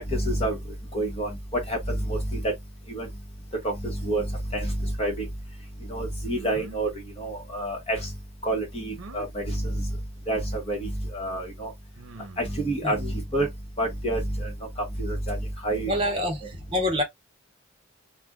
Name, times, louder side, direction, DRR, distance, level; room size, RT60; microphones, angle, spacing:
voice 1, 0.1-0.6 0.9-1.3 1.7-2.4 2.9-3.1 3.6-4.3 4.5-5.2 5.9-6.9 7.2-8.0 8.4-9.9 10.3-11.7 12.4-13.5 13.8-14.5 15.0-15.4 15.6-16.3, right 1 dB, 30° left, 1.0 m, -28 dB
sound 1, 6.3-6.8 9.0-9.3 10.7-10.8 12.0-12.6, right 3 dB, 80° right, 0.6 m, -43 dB
voice 2, 12.8-13.1 15.9-17.0, left 1 dB, 25° right, 0.9 m, -27 dB
2.5 x 2.2 x 3.4 m
head